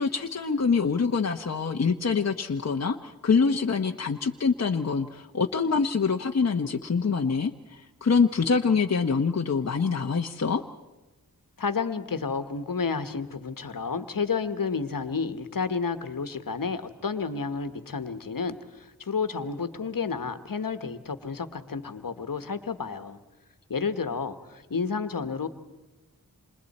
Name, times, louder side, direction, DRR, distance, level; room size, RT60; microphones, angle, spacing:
voice 1, 0.0-10.6, left 5 dB, 45° left, 4 dB, 0.9 m, -25 dB
voice 2, 11.6-23.2 23.7-25.5, left 5 dB, 65° left, 10 dB, 1.4 m, -31 dB
29.0 x 27.0 x 4.3 m, 1.1 s
cardioid pair, 50°, 36 cm